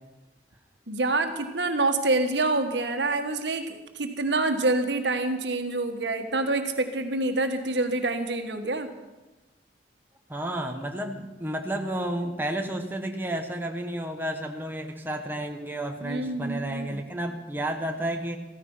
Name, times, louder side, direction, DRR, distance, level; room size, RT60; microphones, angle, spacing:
voice 1, 0.9-8.9 16.0-17.0, right 2 dB, 80° right, 6 dB, 1.6 m, -27 dB
voice 2, 10.3-18.4, right 1 dB, 10° right, 3 dB, 1.2 m, -31 dB
15.0 x 14.5 x 5.7 m, 1.1 s
head